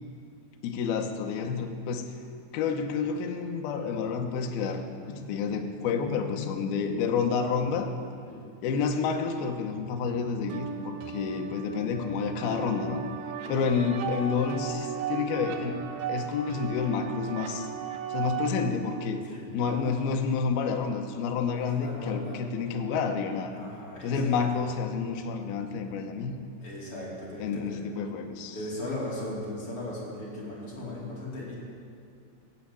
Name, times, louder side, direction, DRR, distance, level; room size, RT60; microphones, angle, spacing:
voice 1, 0.6-2.1 2.5-7.9 8.6-13.0 13.5-17.7 18.1-19.2 19.5-23.5 24.0-26.4 27.4-28.6, left 5 dB, 80° left, 4 dB, 2.2 m, -29 dB
sound 1, 10.5-18.5, right 8 dB, 85° right, 2.3 m, -35 dB
voice 2, 21.6-22.4 23.5-24.4 26.6-27.8 28.5-31.5, left 1 dB, 35° left, -6 dB, 2.8 m, -38 dB
15.5 x 7.7 x 8.3 m, 2.5 s
omnidirectional pair, 5.7 m